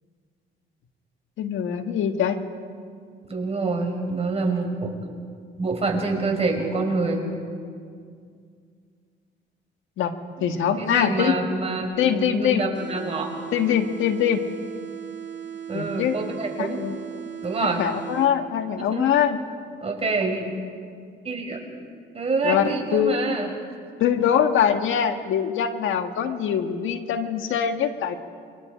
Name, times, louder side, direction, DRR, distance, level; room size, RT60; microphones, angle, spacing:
voice 1, 1.4-2.4 10.0-10.1 10.4-11.4 12.0-12.6 13.5-14.4 15.7-16.1 16.6-17.0 17.6-19.4 20.5-20.6 22.4-22.6 22.9-23.2 24.0-28.2, left 9 dB, 80° left, 7 dB, 1.6 m, -23 dB
voice 2, 3.3-4.9 5.6-7.2 10.4-13.4 15.7-16.8 17.4-17.8 18.9-19.0 19.8-20.5 21.2-21.6 22.1-23.5, right 3 dB, 30° right, 0 dB, 5.7 m, -26 dB
sound 1, 12.7-18.7, right 9 dB, 60° right, 2.0 m, -37 dB
28.5 x 23.5 x 5.1 m, 2.2 s
cardioid pair, 90°, 20 cm